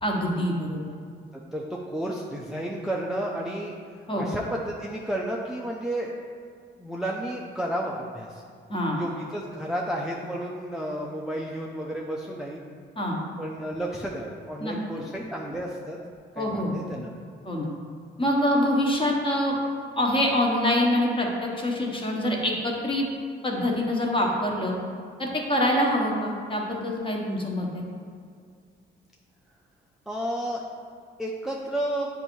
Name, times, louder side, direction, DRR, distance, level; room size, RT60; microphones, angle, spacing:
voice 1, 0.0-0.8 4.1-4.2 8.7-9.0 13.0-13.2 14.6-14.7 16.4-16.7 17.4-17.7 18.2-19.6 20.0-23.1 23.4-24.7 25.2-27.8, left 1 dB, 25° left, -1 dB, 1.2 m, -25 dB
voice 2, 1.3-3.7 4.1-6.1 6.8-8.4 8.9-12.6 13.4-16.0 16.4-17.1 30.1-30.6 31.2-32.1, right 1 dB, ahead, -3 dB, 0.5 m, -32 dB
8.1 x 2.7 x 4.4 m, 2.2 s
cardioid pair, 90°, 20 cm